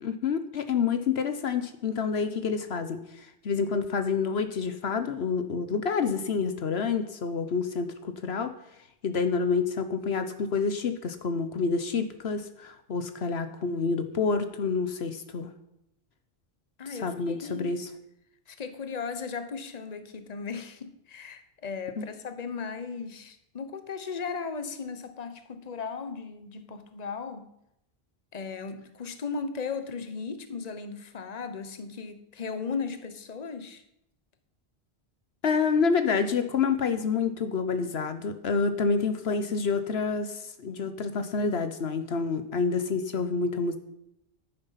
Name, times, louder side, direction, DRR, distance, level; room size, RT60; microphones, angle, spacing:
voice 1, 0.0-8.5 9.0-15.5 17.0-17.9 22.0-22.1 35.4-43.8, left 5 dB, 75° left, 9 dB, 1.2 m, -28 dB
voice 2, 16.8-17.7 18.5-27.5 28.3-33.8, left 5 dB, 40° left, 9 dB, 1.1 m, -36 dB
10.5 x 9.6 x 5.7 m, 0.80 s
omnidirectional pair, 1.1 m